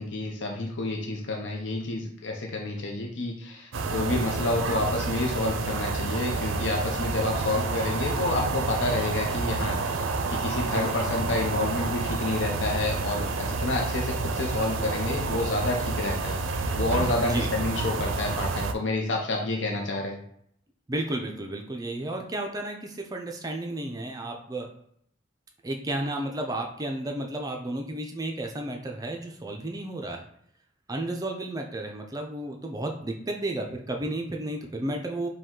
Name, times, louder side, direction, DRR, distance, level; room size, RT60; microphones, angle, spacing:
voice 1, 0.0-16.4 16.7-20.2, left 2 dB, 70° left, 0 dB, 0.6 m, -29 dB
sound 1, 3.7-18.7, right 3 dB, 85° right, 0.4 m, -29 dB
voice 2, 17.2-17.5 20.9-24.7 25.6-30.2 30.9-35.3, right 1 dB, 20° right, 2 dB, 0.4 m, -32 dB
5.2 x 2.2 x 3.7 m, 0.68 s
head